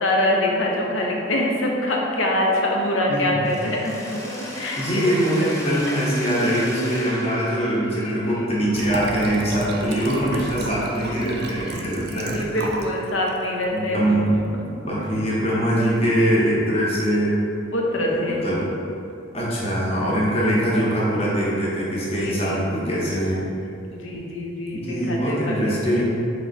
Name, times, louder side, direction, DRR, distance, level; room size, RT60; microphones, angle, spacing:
voice 1, 0.0-4.2 4.5-4.8 5.8-5.9 7.9-8.5 10.1-10.3 11.7-11.8 12.1-14.2 17.7-18.4 22.0-22.6 23.9-25.5, left 1 dB, 80° left, -1 dB, 0.7 m, -25 dB
Mechanisms, 3.4-9.3, equal, 15° left, 0.5 m, -37 dB
voice 2, 4.8-12.5 13.7-14.5 14.8-17.4 18.0-18.7 19.3-23.5 24.7-26.0, equal, 30° left, -6 dB, 0.9 m, -23 dB
Liquid, 8.7-12.9 13.3-13.4, right 2 dB, 55° right, 0.4 m, -31 dB
3.6 x 3.3 x 4.0 m, 2.7 s
head